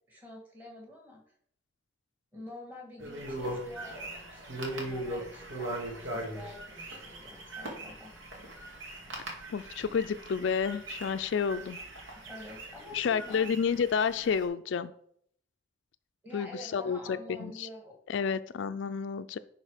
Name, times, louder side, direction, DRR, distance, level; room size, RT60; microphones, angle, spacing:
voice 1, 0.1-1.2 2.3-8.1 12.1-13.5 16.2-17.9 18.2-18.3, left 1 dB, 10° right, -1 dB, 2.0 m, -47 dB
sound 1, 3.0-14.5, right 1 dB, 85° right, 2.3 m, -40 dB
voice 2, 9.5-11.8 12.9-14.9 16.3-17.7 18.1-19.4, left 6 dB, 70° left, 12 dB, 0.4 m, -30 dB
10.5 x 4.1 x 5.0 m, 0.67 s
head